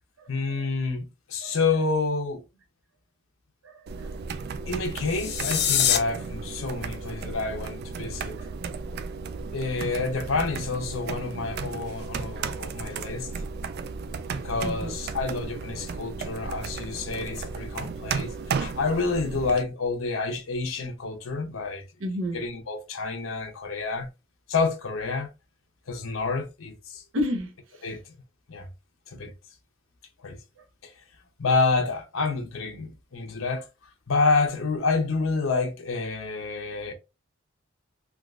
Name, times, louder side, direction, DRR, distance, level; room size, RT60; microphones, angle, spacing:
voice 1, 0.3-2.4 4.7-8.4 9.5-13.3 14.3-21.8 22.3-24.1 24.5-25.3 25.9-27.0 27.8-28.0 28.5-28.7 29.1-29.3 30.2-30.4 30.8-30.9 31.4-33.7 34.1-36.9, left 4 dB, 90° left, 0.8 m, -28 dB
voice 2, 3.6-4.2 8.4-8.6 9.0-9.1 14.6-15.0 22.0-22.4 27.1-27.5, left 1 dB, 80° right, 0.8 m, -31 dB
sound 1, 3.9-19.6, right 5 dB, 50° right, 0.3 m, -34 dB
sound 2, 5.0-6.0, left 9 dB, 55° left, 0.5 m, -24 dB
3.6 x 2.4 x 2.4 m
head